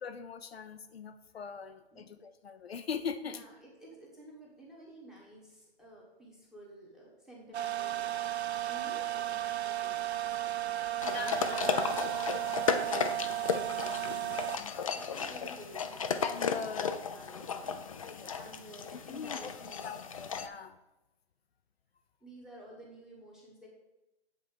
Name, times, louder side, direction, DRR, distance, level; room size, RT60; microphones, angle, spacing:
voice 1, 0.0-3.4 11.0-11.4 11.8-11.9 14.6-14.9 16.2-17.0 18.0-18.3 19.1-19.5 19.8-20.8, left 6 dB, 70° left, 9 dB, 0.7 m, -41 dB
voice 2, 3.2-11.8 12.5-16.3 17.1-17.8 18.1-19.9 22.2-23.7, right 1 dB, ahead, -4 dB, 1.2 m, -53 dB
sound 1, 7.5-14.6, right 13 dB, 80° right, 0.5 m, -34 dB
sound 2, 11.0-20.5, left 6 dB, 35° left, 0.4 m, -35 dB
7.9 x 4.1 x 6.3 m, 0.97 s
hypercardioid pair, 145°, 32 cm